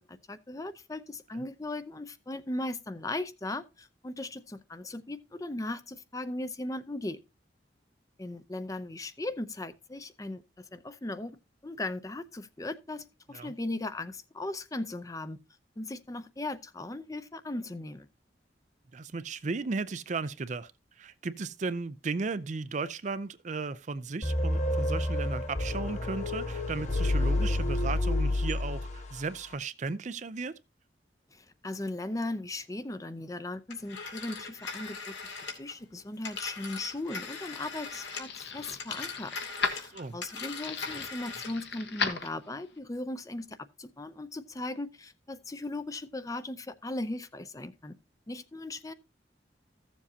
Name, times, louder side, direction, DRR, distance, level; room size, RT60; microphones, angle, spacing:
voice 1, 0.3-7.2 8.2-11.3 11.6-15.4 15.8-18.1 31.3-35.0 35.6-39.4 39.6-47.9 48.3-48.9, left 2 dB, 20° left, 0.6 m, -38 dB
voice 2, 18.9-20.7 21.0-30.6 39.9-40.2, right 4 dB, 40° right, 0.5 m, -35 dB
sound 1, 24.2-29.2, left 1 dB, 40° left, 1.2 m, -29 dB
Telephone, 33.7-38.4 38.7-41.6, left 4 dB, 85° left, 2.5 m, -40 dB
sound 2, 36.8-42.8, left 5 dB, 65° left, 1.4 m, -37 dB
14.5 x 7.2 x 2.8 m
head